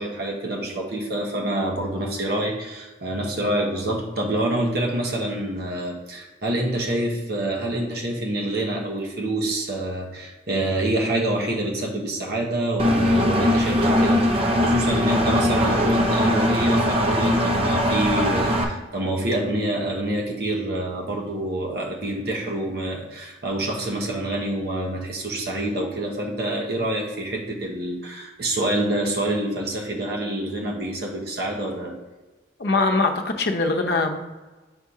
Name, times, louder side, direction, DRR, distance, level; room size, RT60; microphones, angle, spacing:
voice 1, 0.0-31.9, right 1 dB, 60° right, -1 dB, 1.0 m, -27 dB
Engine, 12.8-18.6, equal, 30° right, 0.6 m, -20 dB
voice 2, 32.6-34.2, left 3 dB, 60° left, 4 dB, 0.7 m, -22 dB
7.2 x 2.8 x 4.8 m, 1.2 s
head